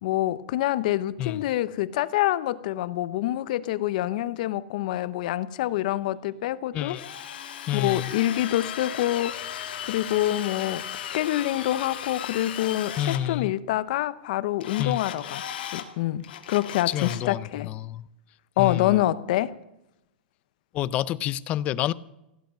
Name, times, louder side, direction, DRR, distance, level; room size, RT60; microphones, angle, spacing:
voice 1, 0.0-7.0 7.7-9.5 9.8-15.4 15.7-17.7 18.6-19.5, left 14 dB, 50° left, 0.7 m, -26 dB
Drill, 6.9-13.2 14.6-15.9 16.2-17.3, left 10 dB, 70° left, 1.9 m, -36 dB
voice 2, 7.7-8.1 13.0-13.5 14.8-15.0 16.9-18.1 18.6-19.0 20.7-21.9, left 13 dB, 25° left, 0.4 m, -28 dB
17.0 x 8.0 x 8.9 m
supercardioid pair, 165°, 5 cm